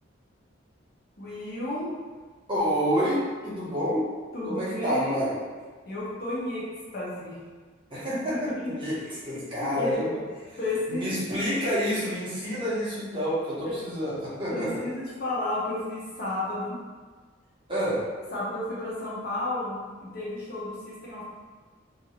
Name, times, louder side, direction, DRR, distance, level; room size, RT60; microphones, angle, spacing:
voice 1, 1.2-1.9 3.6-3.7 4.3-5.3 5.8-6.6 6.9-7.4 8.3-8.7 9.0-9.4 9.7-10.1 10.6-11.2 13.6-13.8 14.5-16.8 18.3-21.2, left 2 dB, 50° left, -7 dB, 0.8 m, -32 dB
voice 2, 2.5-4.0 4.4-5.3 7.9-9.0 9.2-10.2 10.5-10.6 10.9-14.8 17.7-18.0, equal, 25° right, -9 dB, 0.9 m, -28 dB
2.7 x 2.4 x 2.8 m, 1.4 s
head